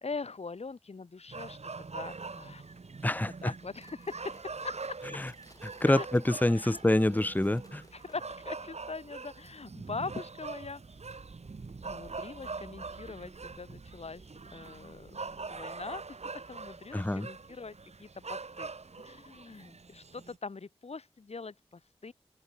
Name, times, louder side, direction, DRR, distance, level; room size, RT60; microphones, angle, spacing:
voice 1, 0.0-2.6 3.4-4.4 4.6-5.0 5.9-6.8 7.9-10.8 11.8-14.2 14.5-16.0 16.5-18.7 19.0-22.1, left 4 dB, 75° left, 1.4 m, -42 dB
sound 1, 1.3-20.4, right 4 dB, 85° right, 2.9 m, -43 dB
voice 2, 3.0-3.5 5.2-5.3 5.6-7.8 16.9-17.3, left 1 dB, 15° left, 0.9 m, -27 dB
sound 2, 3.8-8.6, left 1 dB, 35° left, 5.5 m, -61 dB
open air
wide cardioid pair, 40°, 11 cm